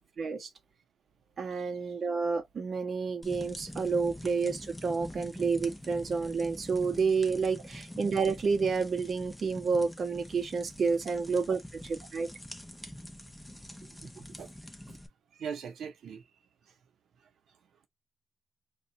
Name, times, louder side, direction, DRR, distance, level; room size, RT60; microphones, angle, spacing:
voice 1, 0.2-0.5 1.4-11.6 12.1-12.3, right 5 dB, 40° right, 0.7 m, -29 dB
sound 1, 3.2-15.1, left 1 dB, 5° left, 0.5 m, -45 dB
voice 2, 15.3-16.2, right 7 dB, 75° right, 0.6 m, -41 dB
2.6 x 2.3 x 3.8 m
wide cardioid pair, 170°, 0 cm